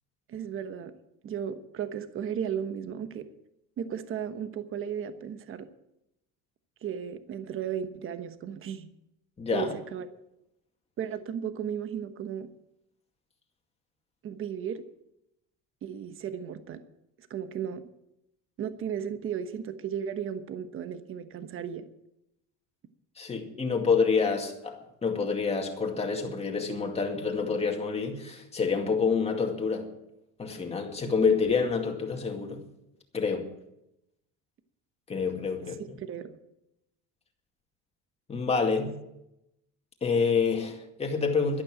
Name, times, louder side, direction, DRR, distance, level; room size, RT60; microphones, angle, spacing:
voice 1, 0.3-0.9 1.2-3.3 3.8-5.7 6.8-8.9 9.5-10.1 11.0-12.5 14.2-14.8 15.8-16.8 17.3-17.8 18.6-21.9 36.0-36.4, right 8 dB, 40° right, 1.2 m, -35 dB
voice 2, 9.4-9.7 23.2-29.9 30.4-32.6 33.1-33.5 35.1-36.0 38.3-39.0 40.0-41.6, left 5 dB, 20° left, 2.2 m, -27 dB
12.0 x 11.5 x 7.5 m
cardioid pair, 165°, 34 cm